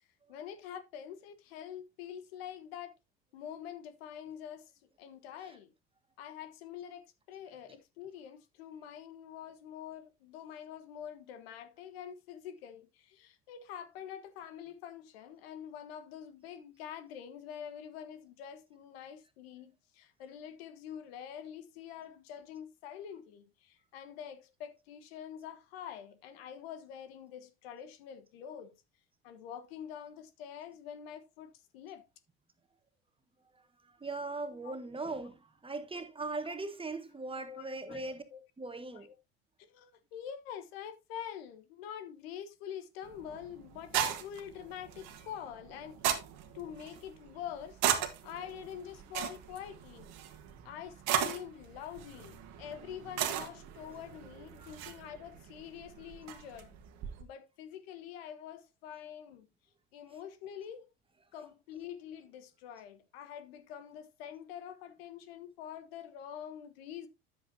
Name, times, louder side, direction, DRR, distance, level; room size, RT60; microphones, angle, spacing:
voice 1, 0.3-2.9 3.3-4.7 5.0-5.7 6.2-28.8 29.2-32.0 34.6-34.8 36.4-36.5 37.4-38.4 38.9-39.2 39.7-46.2 46.5-47.8 48.2-50.2 50.6-56.8 57.2-59.5 59.9-60.9 61.3-67.1, left 9 dB, 75° left, 1.3 m, -46 dB
voice 2, 33.8-38.2 38.6-39.1 54.6-54.9, right 3 dB, 15° right, 1.5 m, -40 dB
sound 1, 43.0-57.2, right 9 dB, 65° right, 1.6 m, -38 dB
9.9 x 8.0 x 2.7 m
hypercardioid pair, 75°, 30 cm